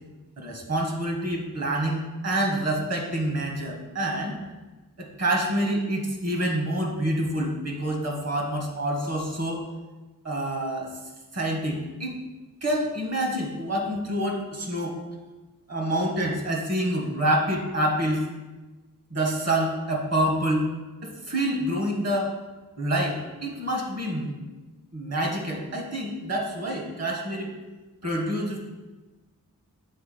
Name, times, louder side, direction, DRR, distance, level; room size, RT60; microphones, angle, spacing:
voice 1, 0.4-4.4 5.0-9.6 10.2-10.9 11.3-12.1 12.6-15.0 15.7-18.3 19.1-20.7 21.0-22.3 22.8-24.4 24.9-27.5 28.0-28.6, right 1 dB, 45° right, 0 dB, 1.5 m, -27 dB
7.2 x 3.8 x 5.0 m, 1.2 s
wide cardioid pair, 60°, 35 cm